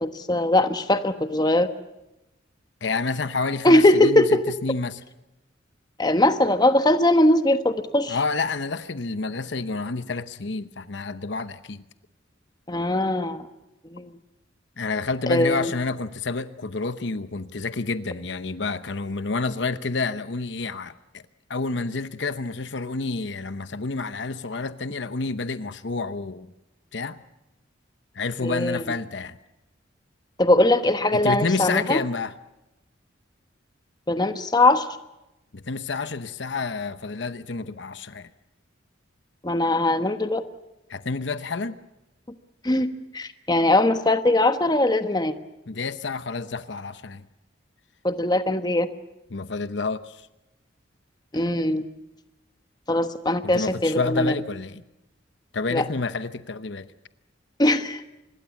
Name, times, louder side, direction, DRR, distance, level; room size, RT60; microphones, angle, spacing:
voice 1, 0.0-1.7 3.6-4.4 6.0-8.2 12.7-13.5 13.9-14.1 15.3-15.7 28.4-28.8 30.4-32.0 34.1-34.9 39.4-40.4 42.6-42.9 43.1-45.3 48.0-48.9 51.3-51.8 52.9-54.3 55.7-55.8 57.6-58.0, left 1 dB, 20° left, 1.2 m, -20 dB
voice 2, 2.8-5.0 8.1-11.8 14.8-21.2 21.5-26.5 26.9-27.2 28.1-29.4 31.1-32.3 35.5-38.3 40.9-41.8 45.7-47.2 49.3-50.3 53.4-54.9 55.5-56.9, left 3 dB, 65° left, 0.9 m, -29 dB
25.5 x 21.5 x 7.2 m
head